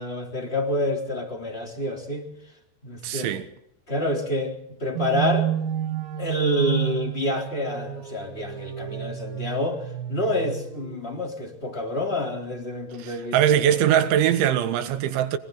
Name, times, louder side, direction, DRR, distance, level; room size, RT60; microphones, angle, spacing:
voice 1, 0.0-2.3 2.8-3.3 3.9-5.5 6.2-13.8, left 1 dB, 15° left, 3.0 m, -28 dB
voice 2, 3.0-3.5 13.0-15.4, right 10 dB, 75° right, 3.6 m, -21 dB
sound 1, 4.9-11.2, right 12 dB, 60° right, 2.7 m, -30 dB
27.5 x 23.5 x 4.0 m
omnidirectional pair, 5.4 m